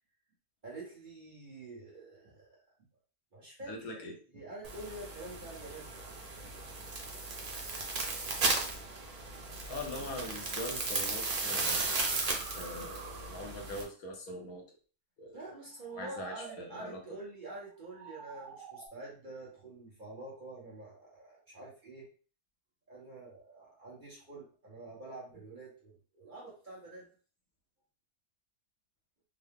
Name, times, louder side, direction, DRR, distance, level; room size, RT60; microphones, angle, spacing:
voice 1, 0.6-2.6 3.3-4.1 4.3-5.9 6.4-6.5 15.3-22.1 22.9-27.1, right 2 dB, 35° right, -5 dB, 1.0 m, -47 dB
voice 2, 3.7-4.1 9.7-11.8 12.5-14.6 15.2-15.4 15.9-17.0, left 1 dB, 70° left, 2 dB, 1.2 m, -42 dB
sound 1, 4.6-13.8, right 3 dB, 90° right, 0.3 m, -35 dB
sound 2, 10.4-10.6 11.4-13.7 15.6-16.8 17.7-18.9, right 6 dB, 65° right, 0.7 m, -49 dB
3.7 x 2.0 x 3.5 m, 0.40 s
omnidirectional pair, 1.6 m